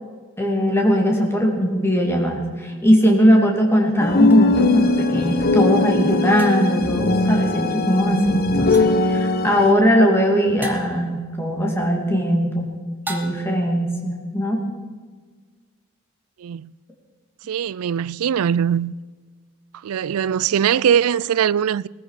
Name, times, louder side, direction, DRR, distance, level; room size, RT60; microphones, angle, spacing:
voice 1, 0.4-12.7 13.1-14.7, equal, 10° left, 2.6 m, -19 dB
sound 1, 4.0-9.7, left 3 dB, 45° left, 1.0 m, -20 dB
sound 2, 4.3-4.4 6.4-6.9 8.7-9.1 10.6-11.0 13.1-13.7, right 1 dB, 10° right, 1.2 m, -35 dB
voice 2, 16.4-16.7 17.5-18.9 19.8-21.9, right 8 dB, 85° right, 0.4 m, -21 dB
19.0 x 14.5 x 4.9 m
head